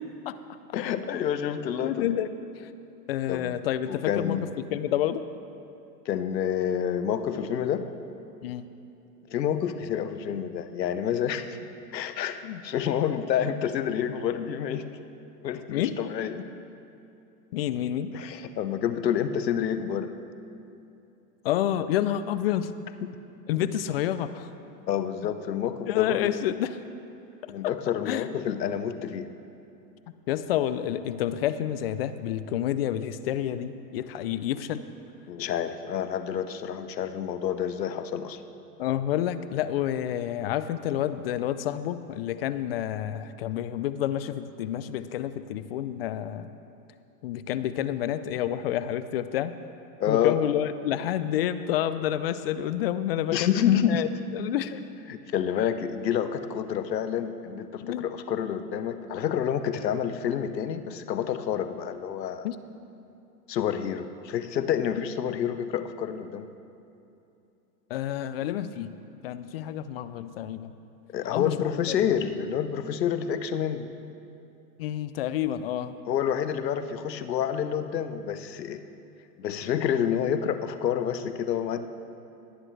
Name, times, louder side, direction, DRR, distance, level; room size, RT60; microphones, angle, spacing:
voice 1, 0.7-2.2 3.3-3.6 3.9-4.5 6.1-7.9 9.3-11.6 11.9-14.9 15.4-16.5 18.1-20.1 23.0-23.1 24.9-26.3 27.5-29.3 35.3-38.4 50.0-50.4 53.3-54.1 55.1-62.5 63.5-66.5 71.1-73.9 76.1-78.8 79.4-81.9, left 9 dB, 85° left, 10 dB, 0.9 m, -28 dB
voice 2, 1.8-2.7 3.1-5.2 8.4-8.7 12.4-12.6 15.7-16.0 17.5-18.1 21.4-22.7 23.5-24.5 25.9-26.8 27.4-27.5 28.1-28.3 30.3-34.8 38.8-46.5 47.2-49.5 50.1-54.8 57.8-58.0 62.4-62.6 67.9-69.0 69.2-70.7 71.3-71.6 71.9-72.0 74.8-76.0, left 11 dB, 40° left, 13 dB, 0.4 m, -29 dB
19.0 x 9.9 x 3.3 m, 2.7 s
hypercardioid pair, 120°, 49 cm